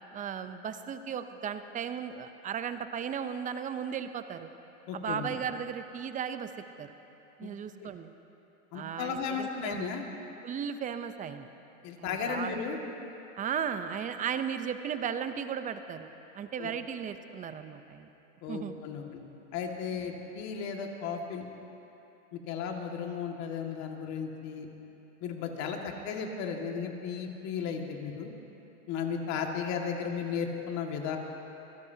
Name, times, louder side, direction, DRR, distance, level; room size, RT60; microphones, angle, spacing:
voice 1, 0.1-4.5 4.9-6.5 6.8-6.9 7.4-8.1 8.7-9.9 10.4-11.5 12.0-12.6 13.4-16.1 16.3-18.1 18.5-18.8 19.9-20.1, right 8 dB, 20° right, 10 dB, 0.6 m, -36 dB
voice 2, 4.9-5.3 7.4-7.5 7.8-7.9 8.7-10.0 11.8-12.8 16.6-16.7 18.4-19.2 19.5-21.4 22.3-24.7 25.2-28.3 28.9-31.2, left 6 dB, 45° left, 2 dB, 1.9 m, -35 dB
25.5 x 16.5 x 2.8 m, 3.0 s
hypercardioid pair, 120°, 38 cm